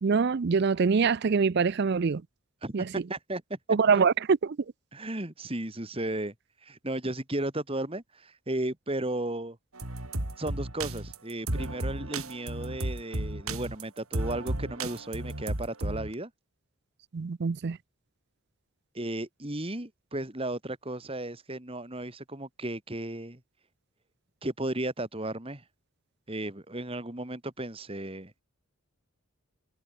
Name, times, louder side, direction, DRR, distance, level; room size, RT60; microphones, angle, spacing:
voice 1, 0.0-2.2 2.7-2.9 3.7-4.6 17.1-17.8, right 5 dB, 50° right, 0.4 m, -24 dB
voice 2, 2.6-3.6 3.9-4.0 4.9-6.3 6.6-9.6 10.4-16.3 18.9-23.4 24.4-25.6 26.3-28.4, right 1 dB, 25° right, 2.1 m, -34 dB
sound 1, 9.8-16.1, right 1 dB, 90° right, 3.8 m, -33 dB
head